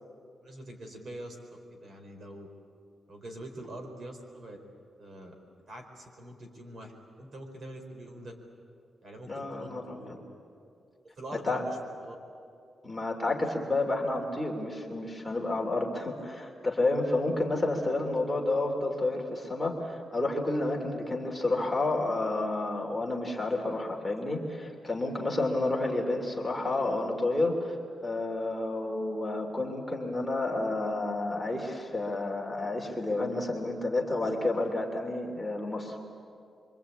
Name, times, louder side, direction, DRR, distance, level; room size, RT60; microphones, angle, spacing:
voice 1, 0.4-1.4 1.7-2.5 3.1-4.6 5.0-5.3 5.7-8.3 9.0-10.1 10.6-10.7 11.2-11.8 12.0-12.1, right 1 dB, 50° right, 4 dB, 4.5 m, -44 dB
voice 2, 9.3-10.2 11.4-11.6 12.8-27.7 28.0-36.0, left 2 dB, 10° left, 0 dB, 2.9 m, -30 dB
26.0 x 24.5 x 8.7 m, 2.5 s
wide cardioid pair, 150°, 0 cm